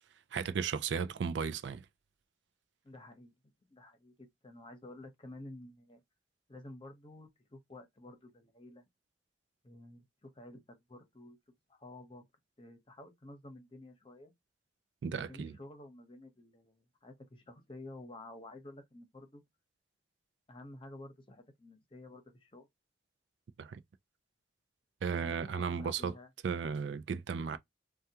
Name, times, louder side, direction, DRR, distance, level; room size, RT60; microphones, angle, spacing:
voice 1, 0.3-1.8 15.0-15.5 23.6-23.8 25.0-26.1 26.4-27.6, right 6 dB, 85° right, 0.4 m, -35 dB
voice 2, 2.8-3.3 3.6-6.0 6.5-8.8 9.6-11.4 11.7-12.3 12.6-14.3 15.1-19.4 20.5-22.7 25.2-26.3, left 1 dB, 30° left, 0.8 m, -51 dB
3.4 x 2.3 x 2.7 m
head